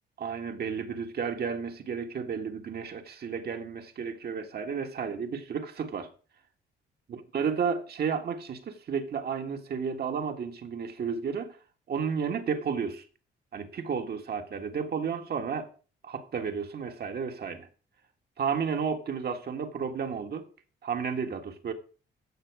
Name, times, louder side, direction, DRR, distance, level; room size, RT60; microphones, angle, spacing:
voice 1, 0.2-6.1 7.1-11.6 11.9-13.0 13.5-15.7 16.0-17.7 18.4-20.5 20.8-21.7, right 6 dB, 55° right, 1.6 m, -32 dB
15.5 x 5.9 x 4.8 m
cardioid pair, 90°, 20 cm